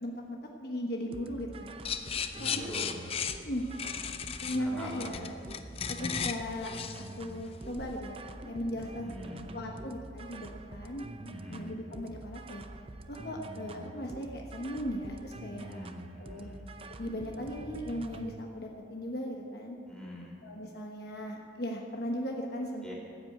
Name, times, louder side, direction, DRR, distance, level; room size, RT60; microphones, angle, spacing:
voice 1, 0.0-1.7 2.4-2.8 3.4-3.7 4.4-5.3 6.0-6.7 7.2-8.1 8.5-9.1 9.5-12.6 13.1-15.9 16.2-16.5 16.9-19.8 20.4-22.9, equal, 55° left, 0 dB, 1.2 m, -37 dB
sound 1, 1.1-18.4, right 2 dB, 30° right, 0.6 m, -46 dB
sound 2, 1.8-8.0, left 7 dB, 30° left, 0.5 m, -36 dB
voice 2, 2.3-3.0 4.6-5.1 9.0-9.5 11.3-11.7 15.7-16.7 19.9-20.4 22.8-22.9, equal, 5° left, -4 dB, 3.2 m, -45 dB
14.5 x 8.0 x 8.5 m, 2.8 s
head